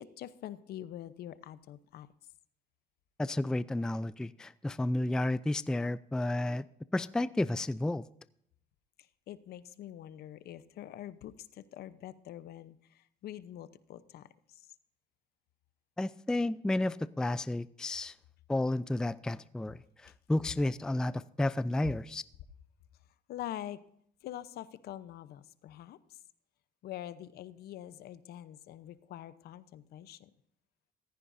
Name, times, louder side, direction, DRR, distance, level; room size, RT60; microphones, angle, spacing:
voice 1, 0.0-2.1 9.0-14.7 23.3-23.8 24.2-26.2 26.8-30.3, left 12 dB, 70° left, 14 dB, 0.9 m, -45 dB
voice 2, 3.2-6.7 6.9-8.0 16.0-18.1 18.5-22.2, left 1 dB, 5° left, 16 dB, 0.3 m, -32 dB
15.0 x 15.0 x 2.7 m, 0.69 s
cardioid pair, 110°, 17 cm